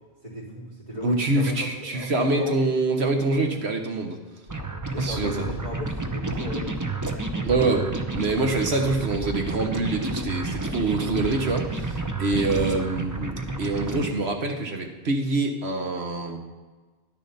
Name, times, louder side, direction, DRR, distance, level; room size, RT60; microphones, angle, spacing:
voice 1, 0.2-2.6 4.9-6.9 7.3-7.9 8.8-9.0, equal, 35° right, -6 dB, 3.8 m, -36 dB
voice 2, 1.0-4.2 5.0-5.5 7.4-16.4, right 2 dB, 70° right, 4 dB, 1.6 m, -25 dB
sound 1, 4.5-14.1, right 2 dB, 20° right, 0.7 m, -30 dB
11.0 x 10.0 x 4.2 m, 1.3 s
omnidirectional pair, 1.1 m